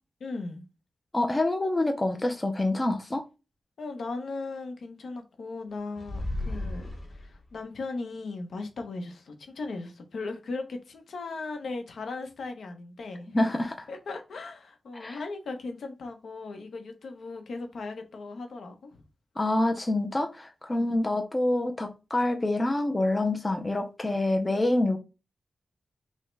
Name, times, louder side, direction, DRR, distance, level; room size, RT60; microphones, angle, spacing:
voice 1, 0.2-0.6 3.8-13.3 13.9-19.0 20.7-21.0, left 3 dB, 75° left, 0.8 m, -37 dB
voice 2, 1.1-3.2 13.3-13.9 14.9-15.2 19.4-25.0, left 2 dB, 20° left, 0.4 m, -26 dB
sound 1, 6.0-7.6, left 1 dB, 50° left, 1.3 m, -34 dB
5.4 x 2.1 x 3.2 m
wide cardioid pair, 165°, 0 cm